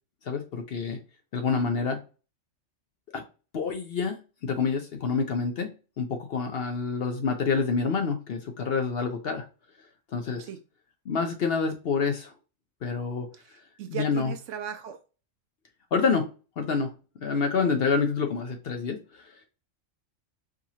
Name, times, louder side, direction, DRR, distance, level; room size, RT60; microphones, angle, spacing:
voice 1, 0.3-1.0 1.3-2.0 3.1-3.2 3.5-9.4 10.1-10.5 11.1-12.3 12.8-13.3 13.9-14.3 15.9-16.3 16.6-19.4, left 5 dB, 60° left, 5 dB, 0.7 m, -28 dB
voice 2, 13.4-15.0, right 9 dB, 70° right, 7 dB, 0.9 m, -37 dB
4.7 x 2.9 x 2.7 m, 0.34 s
omnidirectional pair, 1.4 m